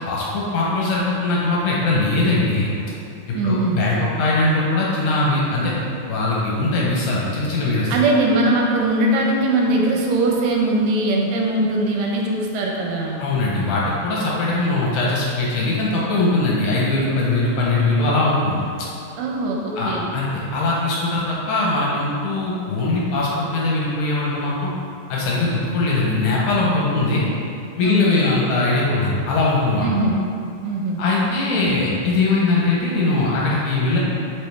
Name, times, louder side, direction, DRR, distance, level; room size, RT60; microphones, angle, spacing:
voice 1, 0.1-2.7 3.3-5.7 6.1-7.9 13.2-18.6 19.8-24.7 25.1-27.2 27.8-29.9 31.0-34.0, left 2 dB, 70° left, -5 dB, 2.2 m, -21 dB
voice 2, 3.3-3.8 7.9-13.2 19.2-20.1 27.8-28.3 29.8-30.2 30.6-31.0, right 2 dB, 75° right, -1 dB, 2.3 m, -21 dB
7.4 x 5.1 x 3.5 m, 2.6 s
omnidirectional pair, 4.1 m